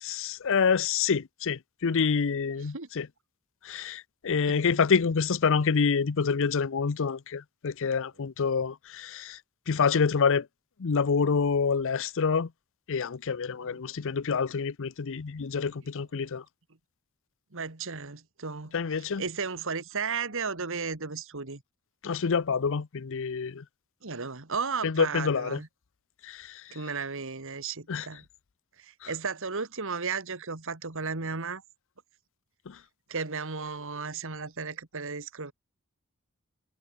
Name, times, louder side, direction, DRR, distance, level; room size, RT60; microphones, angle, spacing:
voice 1, 0.0-3.1 3.6-9.4 9.7-10.5 10.8-12.5 12.9-16.4 18.7-19.2 22.0-23.6 24.8-25.6 26.2-26.6 27.9-28.1 32.7-32.8, left 5 dB, 65° left, 0.6 m, -27 dB
voice 2, 13.6-13.9 16.2-16.3 17.5-18.8 19.2-21.6 24.0-25.7 26.7-28.2 28.8-31.6 33.1-35.5, right 5 dB, 65° right, 2.0 m, -34 dB
head